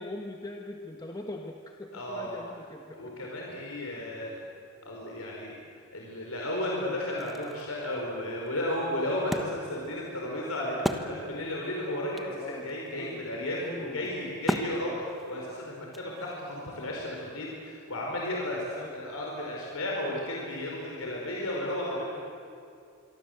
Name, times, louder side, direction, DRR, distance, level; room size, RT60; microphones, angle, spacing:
voice 1, 0.0-3.3 4.0-4.2 12.4-13.3 13.6-14.1 14.7-15.0 18.7-19.0, left 1 dB, 20° left, 2 dB, 1.3 m, -42 dB
voice 2, 1.9-2.4 2.9-4.4 4.8-22.2, left 1 dB, 80° left, -2 dB, 4.9 m, -34 dB
Wood, 7.2-11.6 11.9-12.0 12.2-16.5, equal, ahead, 1.3 m, -37 dB
26.5 x 23.5 x 8.0 m, 2.5 s
head